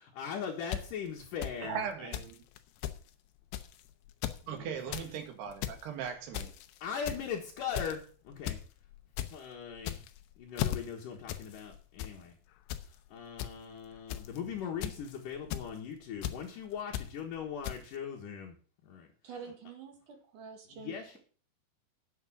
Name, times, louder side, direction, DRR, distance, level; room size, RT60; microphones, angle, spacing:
voice 1, 0.0-2.1 4.4-5.1 6.8-8.6 9.3-10.0 10.4-12.4 13.1-18.6 18.8-19.1 20.7-21.2, left 7 dB, 60° left, -1 dB, 2.7 m, -40 dB
sound 1, 0.7-0.8 1.4-1.5 2.1-2.3 2.6-2.7 2.8-3.0 3.5-3.7 4.1-4.4 4.7-5.1 5.5-5.8 6.3-6.6 7.1-7.3 7.7-8.0 8.5-8.6 8.9-9.3 9.8-10.2 10.6-10.8 11.3-11.4 11.7-12.1 12.7-12.8 13.4-13.5 14.1-14.4 14.8-15.1 15.5-15.7 16.2-16.3 16.9-17.1 17.6-17.8, left 12 dB, 90° left, 3.0 m, -35 dB
voice 2, 1.6-2.4 4.5-6.5, right 8 dB, 70° right, 4 dB, 4.1 m, -39 dB
voice 3, 19.2-21.2, right 6 dB, 55° right, 4 dB, 3.1 m, -47 dB
9.3 x 7.4 x 7.5 m, 0.42 s
omnidirectional pair, 4.9 m